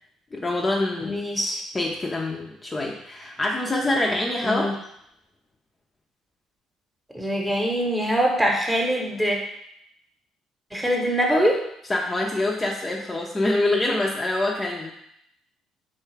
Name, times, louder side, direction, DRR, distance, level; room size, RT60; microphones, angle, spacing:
voice 1, 0.3-1.2 1.7-4.7 11.9-14.9, left 2 dB, 25° left, -1 dB, 0.5 m, -25 dB
voice 2, 1.0-1.6 4.4-4.7 7.1-9.4 10.7-11.6, equal, 5° right, 0 dB, 0.9 m, -23 dB
3.8 x 2.3 x 3.2 m, 0.75 s
hypercardioid pair, 55°, 0 cm